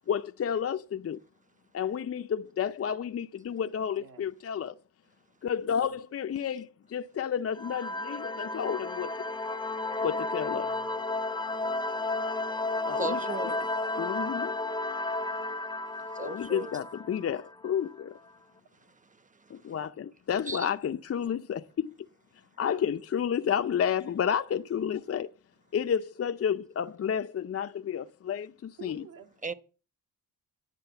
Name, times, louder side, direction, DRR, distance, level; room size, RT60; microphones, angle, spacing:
voice 1, 0.1-1.2 1.7-4.7 5.4-9.1 10.0-10.7 12.9-13.5 14.0-14.5 16.2-18.1 19.5-21.9 22.6-25.3 25.7-29.0, left 8 dB, 40° left, 0.6 m, -31 dB
sound 1, 7.5-17.9, left 2 dB, 10° left, 0.8 m, -33 dB
voice 2, 10.4-10.9 28.8-29.3, right 5 dB, 60° right, 2.6 m, -49 dB
voice 3, 11.6-12.1 13.0-13.6 15.1-15.6 16.0-16.7 19.1-19.8 20.5-20.7 29.4-29.5, right 3 dB, 20° right, 1.1 m, -39 dB
10.5 x 6.5 x 8.0 m
cardioid pair, 90°, 38 cm